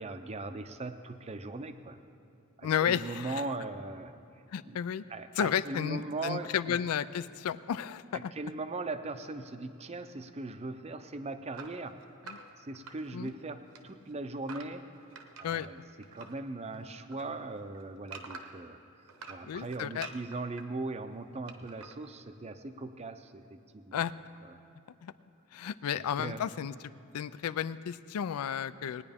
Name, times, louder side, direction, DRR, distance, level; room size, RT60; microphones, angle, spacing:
voice 1, 0.0-2.0 2.6-4.1 4.6-4.8 5.1-6.8 8.3-12.0 12.6-14.8 15.4-15.8 16.1-18.8 19.3-24.0 24.4-24.6 25.9-26.4, right 3 dB, 30° right, 9 dB, 0.5 m, -39 dB
voice 2, 2.6-3.5 4.5-5.0 5.4-8.3 12.3-12.4 13.1-13.3 15.4-15.7 19.4-20.1 23.9-24.1 25.0-25.1 25.5-26.7 27.1-29.0, left 8 dB, 80° left, 16 dB, 0.4 m, -32 dB
sound 1, 11.5-13.4 13.7-16.4 16.7-18.7 19.1-20.6 21.5-22.0, right 4 dB, 75° right, 0.9 m, -47 dB
19.0 x 9.7 x 3.5 m, 2.7 s
head